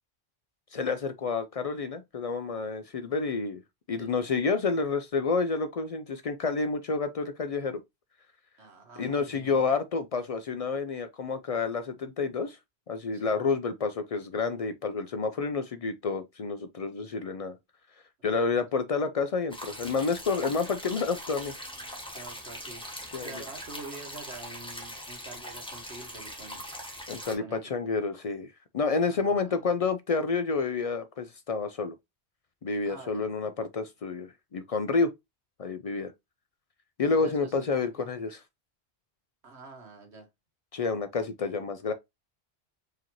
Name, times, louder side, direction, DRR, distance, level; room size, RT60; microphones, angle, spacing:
voice 1, 0.7-3.6 3.9-7.8 9.0-12.6 12.9-17.6 18.2-21.5 23.1-23.4 27.1-32.0 32.6-35.1 35.6-36.1 37.0-38.4 40.7-41.9, left 4 dB, 60° left, 0.3 m, -29 dB
voice 2, 8.6-9.7 13.1-13.4 18.5-18.6 22.1-22.8 23.2-26.6 27.4-27.7 29.1-29.6 32.8-33.2 37.2-37.7 37.9-38.0 39.4-40.3, right 3 dB, 75° right, 1.6 m, -46 dB
sound 1, 19.5-27.4, equal, 5° left, 1.0 m, -41 dB
4.8 x 2.8 x 2.9 m
omnidirectional pair, 1.1 m